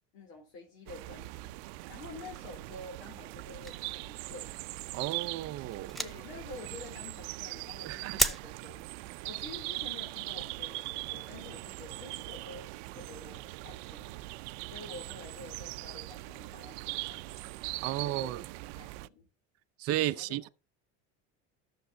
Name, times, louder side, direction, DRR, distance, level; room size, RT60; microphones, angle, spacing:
voice 1, 0.1-4.5 6.0-8.8 9.2-14.2 14.6-17.5 17.8-18.4 18.7-19.3 20.0-20.4, left 3 dB, 65° left, 3.4 m, -49 dB
sound 1, 0.9-19.1, right 21 dB, 80° right, 0.6 m, -41 dB
sound 2, 3.6-4.2 4.6-4.8 5.1-5.3 5.7-6.4 7.1-7.3 7.5-7.8 8.1-8.4, right 1 dB, ahead, 0.6 m, -33 dB
voice 2, 4.9-6.0 7.8-8.2 17.8-18.4 19.8-20.5, right 15 dB, 50° right, 0.8 m, -33 dB
14.0 x 6.8 x 2.8 m
cardioid pair, 150°, 31 cm